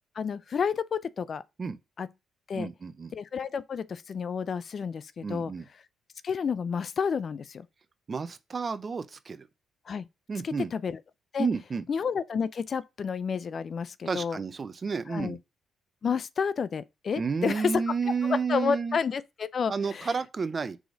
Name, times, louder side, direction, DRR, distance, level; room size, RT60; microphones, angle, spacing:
voice 1, 0.2-1.4 2.0-2.1 2.5-2.7 3.1-5.5 6.2-7.7 9.9-10.1 10.4-11.0 11.3-11.5 11.9-14.4 15.1-15.4 16.0-17.9 18.2-20.1, left 6 dB, 50° left, 0.4 m, -30 dB
voice 2, 2.5-3.1 5.2-5.7 8.1-9.5 10.3-10.7 11.4-11.8 14.0-15.4 17.2-19.0 19.7-20.8, right 5 dB, 35° right, 0.6 m, -31 dB
4.9 x 3.8 x 5.1 m
cardioid pair, 90°, 0 cm